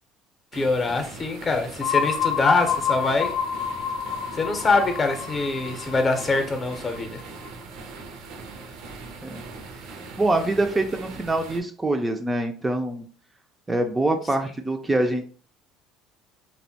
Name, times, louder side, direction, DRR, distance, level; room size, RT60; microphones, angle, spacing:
voice 1, 0.5-3.4 4.3-7.2, left 3 dB, 30° left, 6 dB, 0.6 m, -24 dB
sound 1, 0.5-11.6, right 4 dB, 75° right, 0.5 m, -41 dB
sound 2, 1.8-7.5, left 7 dB, 80° left, 0.4 m, -28 dB
voice 2, 9.8-13.1 13.7-15.2, right 2 dB, 15° right, 5 dB, 0.3 m, -25 dB
2.7 x 2.1 x 2.7 m, 0.42 s
supercardioid pair, 90°, 0 cm